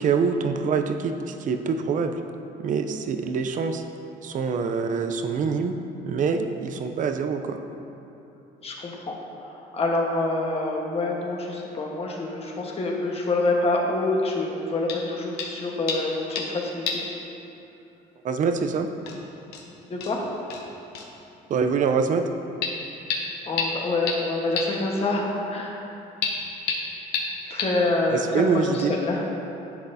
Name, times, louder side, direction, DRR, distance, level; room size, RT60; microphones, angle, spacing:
voice 1, 0.0-2.2 2.6-3.8 4.2-5.8 6.0-7.6 18.2-18.9 21.5-22.3 27.5-27.6 28.1-29.0, right 5 dB, 50° right, 7 dB, 0.6 m, -25 dB
voice 2, 8.6-9.1 9.4-17.0 19.9-20.2 23.5-25.8 27.5-29.3, left 2 dB, 35° left, -1 dB, 1.4 m, -26 dB
sound 1, 14.9-15.1 15.4-15.6 15.9-16.6 16.9-17.1 17.4-17.5 18.6-18.7 19.1-19.2 19.5-19.6 20.0-20.1 20.5-20.6 20.9-21.1 22.6-22.7 23.1-23.2 23.6-23.7 24.1-24.2 24.6-24.7 26.2-26.3 26.7-26.8 27.1-27.2 27.6-27.7, left 6 dB, 85° left, 1.0 m, -28 dB
10.5 x 7.7 x 2.8 m, 2.9 s
cardioid pair, 110°, 17 cm